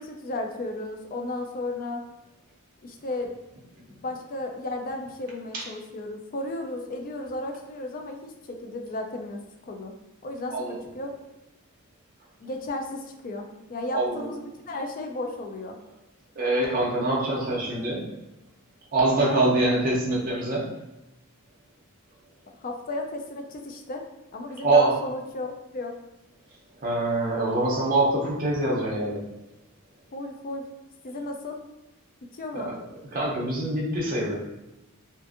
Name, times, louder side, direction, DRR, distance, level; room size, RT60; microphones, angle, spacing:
voice 1, 0.0-2.0 2.8-3.4 4.0-9.9 10.2-11.1 12.4-15.8 19.1-19.7 22.6-24.0 24.3-25.9 30.1-30.7 31.0-31.6 32.3-32.7, left 2 dB, 40° left, 3 dB, 0.3 m, -34 dB
voice 2, 13.9-14.3 16.4-18.1 18.9-20.7 24.6-25.0 26.8-29.2 32.5-32.8 33.1-34.3, right 2 dB, 40° right, -5 dB, 0.6 m, -24 dB
2.6 x 2.5 x 2.5 m, 0.98 s
head